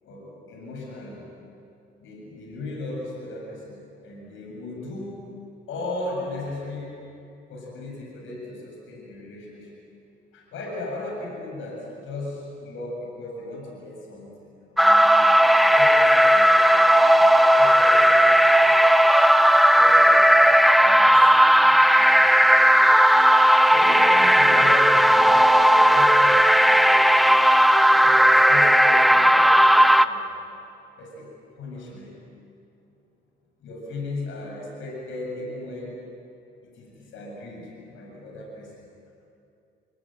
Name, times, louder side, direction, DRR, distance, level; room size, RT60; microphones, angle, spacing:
voice 1, 0.0-1.3 2.0-5.2 5.7-7.0 7.5-9.8 10.3-15.3 15.7-16.6 17.2-18.8 19.7-22.3 22.6-22.7 23.7-27.4 27.9-30.3 31.0-31.3 31.6-32.2 33.6-36.0 36.6-38.7, left 2 dB, 80° left, -1 dB, 7.6 m, -37 dB
sound 1, 14.8-30.1, equal, ahead, 0.9 m, -16 dB
28.5 x 18.5 x 9.2 m, 2.6 s
cardioid pair, 90°, 20 cm